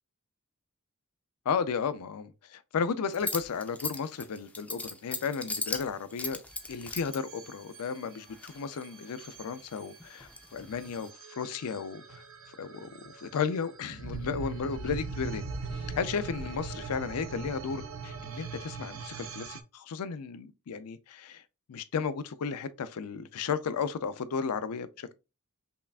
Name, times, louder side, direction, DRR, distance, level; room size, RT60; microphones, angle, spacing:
voice 1, 1.5-6.4 6.7-12.2 12.6-15.4 15.7-21.4 21.7-25.1, left 6 dB, 80° left, 0.4 m, -34 dB
sound 1, 3.1-7.2 8.1-9.0 9.3-11.1, left 3 dB, 5° left, 0.3 m, -38 dB
sound 2, 6.5-19.6, right 4 dB, 65° right, 0.6 m, -41 dB
5.5 x 2.4 x 2.2 m
head